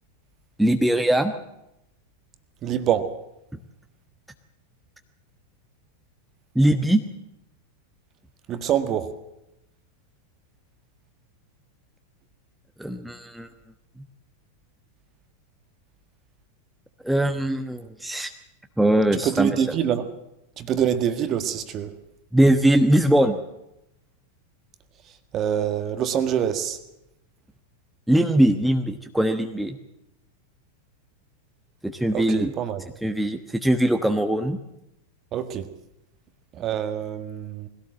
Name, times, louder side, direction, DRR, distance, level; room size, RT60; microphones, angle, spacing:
voice 1, 0.6-1.3 6.5-7.0 12.8-13.5 17.0-18.3 18.8-19.5 22.3-23.4 28.1-29.8 31.8-32.5 33.0-34.6, right 1 dB, ahead, 5 dB, 1.2 m, -21 dB
voice 2, 2.6-3.1 8.5-9.1 19.2-20.1 20.6-21.9 25.3-26.8 32.1-32.8 35.3-35.7 36.6-37.7, right 9 dB, 30° right, 9 dB, 1.7 m, -25 dB
21.0 x 17.0 x 7.6 m, 0.86 s
figure-of-eight pair, 90°, 0 cm